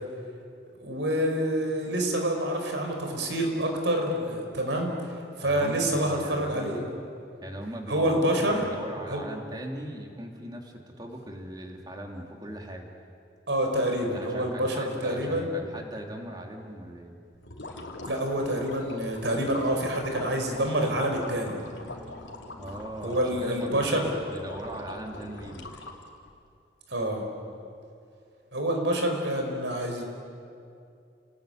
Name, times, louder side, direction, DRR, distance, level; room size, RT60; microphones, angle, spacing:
voice 1, 0.8-4.9 5.4-6.8 7.9-8.7 9.1-9.2 13.5-15.5 18.1-21.6 23.0-24.1 26.9-27.3 28.5-30.0, right 1 dB, 80° right, 3 dB, 5.0 m, -27 dB
voice 2, 5.4-6.8 7.4-12.9 14.1-17.1 22.6-25.7, right 1 dB, 20° right, 1 dB, 3.0 m, -39 dB
sound 1, 17.3-26.3, left 2 dB, 90° left, 3.2 m, -43 dB
29.5 x 19.5 x 9.3 m, 2.5 s
head